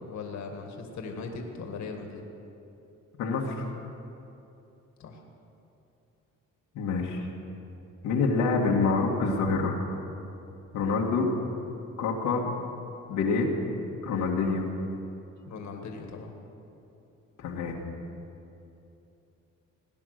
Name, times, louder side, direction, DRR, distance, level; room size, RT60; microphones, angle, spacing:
voice 1, 0.1-2.2 5.0-5.2 15.4-16.3, left 4 dB, 65° left, 3 dB, 1.8 m, -39 dB
voice 2, 3.2-3.7 6.7-7.3 8.0-9.8 10.7-11.3 12.0-12.4 13.1-13.5 14.0-14.7 17.4-17.7, left 4 dB, 90° left, -2 dB, 1.8 m, -26 dB
18.5 x 9.9 x 6.5 m, 2.8 s
cardioid pair, 90°, 30 cm